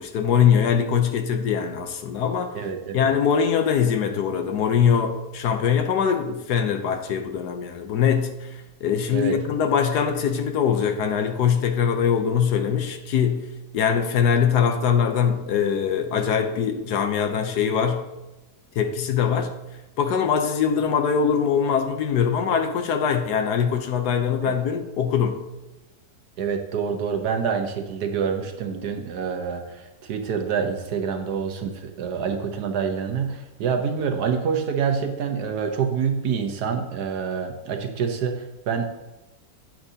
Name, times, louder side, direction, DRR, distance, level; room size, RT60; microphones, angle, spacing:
voice 1, 0.0-2.5 2.9-8.5 8.8-13.5 13.7-18.0 18.8-19.5 20.0-25.4, left 7 dB, 70° left, 6 dB, 1.3 m, -22 dB
voice 2, 2.5-3.1 9.1-9.4 24.4-24.5 26.4-38.8, right 6 dB, 65° right, 5 dB, 1.3 m, -27 dB
9.1 x 8.8 x 2.8 m, 1.0 s
omnidirectional pair, 1.9 m